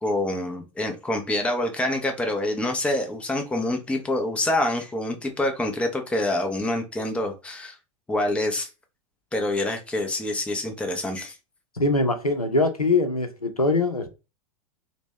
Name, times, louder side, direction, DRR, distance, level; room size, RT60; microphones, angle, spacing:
voice 1, 0.0-7.8 8.1-8.7 9.3-11.3, left 1 dB, 5° left, 0.5 m, -26 dB
voice 2, 11.8-14.1, left 2 dB, 90° left, 0.6 m, -22 dB
2.9 x 2.2 x 3.4 m
figure-of-eight pair, 90°, 18 cm